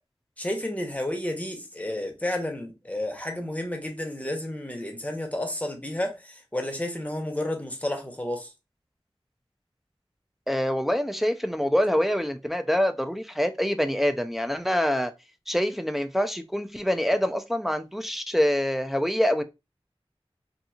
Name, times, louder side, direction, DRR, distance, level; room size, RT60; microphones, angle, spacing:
voice 1, 0.4-8.5, left 1 dB, 15° left, 0.8 m, -31 dB
voice 2, 10.5-15.1 15.5-19.4, equal, ahead, 0.4 m, -25 dB
2.8 x 2.6 x 2.3 m
wide cardioid pair, 45°, 10 cm